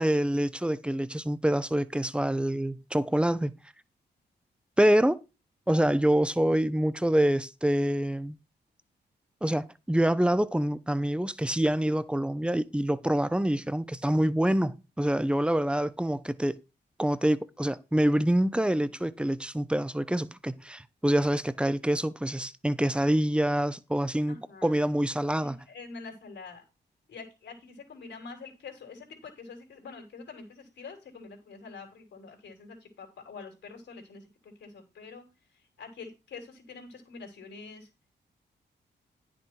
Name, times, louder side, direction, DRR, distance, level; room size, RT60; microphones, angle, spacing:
voice 1, 0.0-3.5 4.8-5.2 5.7-8.4 9.4-16.6 17.0-24.4 24.6-25.5, right 1 dB, 5° right, 0.6 m, -26 dB
voice 2, 24.3-24.9 25.4-26.6 27.1-35.2 35.5-37.9, left 4 dB, 80° left, 3.4 m, -46 dB
10.0 x 6.3 x 4.5 m
cardioid pair, 80°, 18 cm